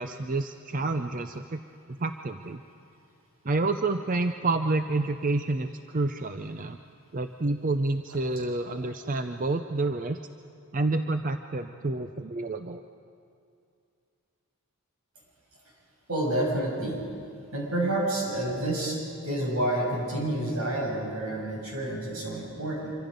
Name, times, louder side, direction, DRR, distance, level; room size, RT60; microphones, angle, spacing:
voice 1, 0.0-1.6 1.9-2.6 3.4-6.8 7.1-10.2 10.7-12.8, right 2 dB, 35° right, 8 dB, 0.5 m, -29 dB
voice 2, 16.1-17.0 17.5-22.9, right 1 dB, 75° right, -2 dB, 6.7 m, -29 dB
25.5 x 25.0 x 5.3 m, 2.4 s
head